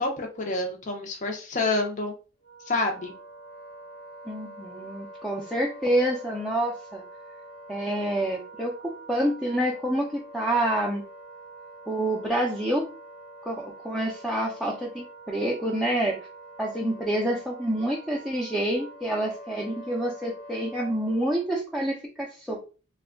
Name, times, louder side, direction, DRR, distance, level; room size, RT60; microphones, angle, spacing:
voice 1, 0.0-2.1 2.7-3.1, left 2 dB, 40° left, 2 dB, 0.7 m, -28 dB
Wind instrument woodwind instrument, 2.4-21.5, right 1 dB, 80° left, 1.0 m, -45 dB
voice 2, 4.3-7.0 7.7-11.0 11.9-12.9 13.4-16.2 16.6-22.6, right 1 dB, ahead, -3 dB, 0.5 m, -27 dB
3.2 x 2.2 x 3.7 m, 0.34 s
head